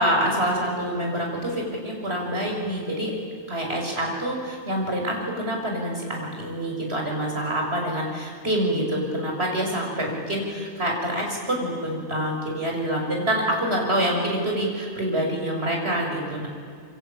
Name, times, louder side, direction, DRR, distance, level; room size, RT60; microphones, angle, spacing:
voice 1, 0.0-3.1 3.5-16.5, right 1 dB, 55° right, 0 dB, 6.6 m, -26 dB
27.5 x 24.5 x 8.9 m, 2.1 s
omnidirectional pair, 1.3 m